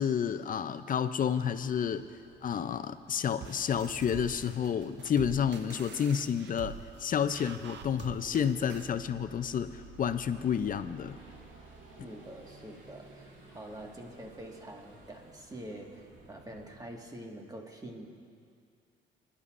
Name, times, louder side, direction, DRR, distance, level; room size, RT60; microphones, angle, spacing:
voice 1, 0.0-2.1 2.4-11.2 12.0-12.1, left 8 dB, 45° left, 11 dB, 0.5 m, -30 dB
sound 1, 1.1-16.8, right 2 dB, 80° right, 2.8 m, -55 dB
sound 2, 3.4-9.0, right 9 dB, 60° right, 0.5 m, -46 dB
voice 2, 12.0-18.0, right 1 dB, 20° right, 1 dB, 1.7 m, -46 dB
23.0 x 11.0 x 2.5 m, 2.2 s
cardioid pair, 90°, 20 cm